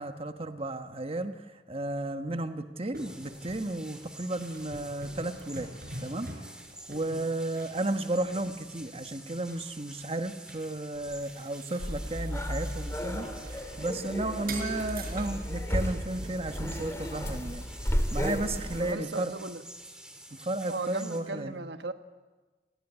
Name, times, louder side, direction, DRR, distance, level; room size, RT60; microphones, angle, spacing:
voice 1, 0.0-5.7 6.0-6.3 6.9-13.5 13.8-17.6 18.1-19.3 20.3-21.5, right 2 dB, 35° right, 8 dB, 1.2 m, -33 dB
sound 1, 2.9-9.1 9.5-14.1 14.4-17.0, right 2 dB, 55° right, 5.0 m, -46 dB
sound 2, 3.0-21.2, right 1 dB, 5° right, 2.9 m, -49 dB
sound 3, 11.8-18.9, equal, 15° left, 2.3 m, -33 dB
voice 2, 18.8-19.7 20.7-21.9, right 3 dB, 75° right, 9 dB, 1.4 m, -36 dB
29.0 x 20.0 x 9.9 m, 1.3 s
head